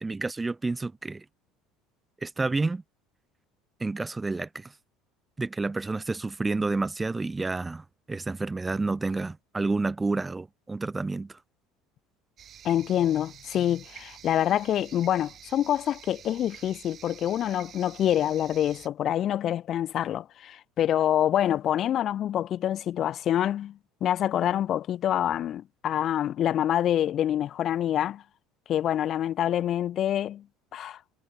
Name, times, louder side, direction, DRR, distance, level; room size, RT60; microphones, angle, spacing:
voice 1, 0.0-1.2 2.2-2.8 3.8-4.7 5.4-11.4, right 3 dB, 15° right, 1.0 m, -30 dB
sound 1, 12.4-18.9, right 9 dB, 45° right, 1.2 m, -49 dB
voice 2, 12.6-28.2 28.7-30.4 30.7-31.0, left 11 dB, 50° left, 0.6 m, -26 dB
supercardioid pair, 100°, 0 cm